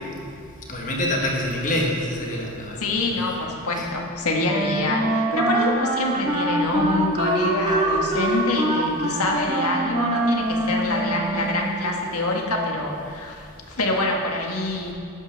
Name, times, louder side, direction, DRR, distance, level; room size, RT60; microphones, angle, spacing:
voice 1, 0.7-3.3 3.8-3.9, left 1 dB, 35° left, -1 dB, 1.5 m, -26 dB
voice 2, 2.8-14.9, left 2 dB, 90° left, 0 dB, 1.5 m, -25 dB
Wind instrument woodwind instrument, 4.4-11.8, right 2 dB, 25° right, 1.2 m, -24 dB
11.5 x 10.5 x 3.5 m, 2.4 s
head